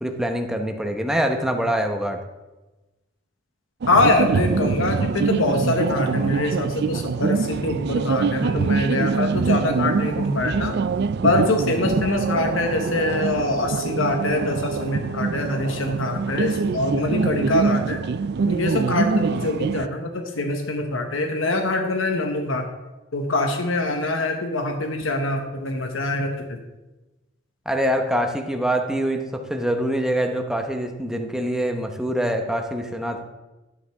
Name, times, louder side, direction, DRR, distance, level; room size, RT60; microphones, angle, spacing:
voice 1, 0.0-2.2 27.7-33.2, equal, 5° right, 4 dB, 0.9 m, -24 dB
sound 1, 3.8-19.9, right 4 dB, 55° right, 0.4 m, -24 dB
voice 2, 3.9-10.8 11.2-18.0 18.5-22.7 23.1-26.6, left 2 dB, 90° left, 4 dB, 1.0 m, -24 dB
11.0 x 9.8 x 3.5 m, 1.1 s
head